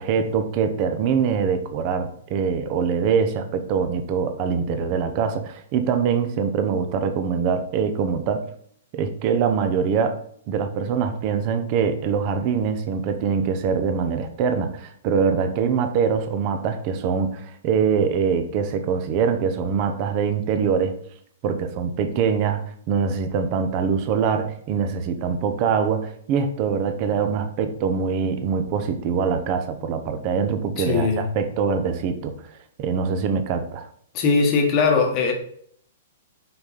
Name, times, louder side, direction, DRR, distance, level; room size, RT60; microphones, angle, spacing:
voice 1, 0.0-8.5 8.9-10.2 10.5-20.9 21.4-32.3 32.8-33.9, right 6 dB, 25° right, 8 dB, 0.6 m, -23 dB
voice 2, 30.8-31.3 34.1-35.3, left 4 dB, 20° left, 2 dB, 1.1 m, -20 dB
5.8 x 5.1 x 4.0 m, 0.62 s
hypercardioid pair, 180°, 0 cm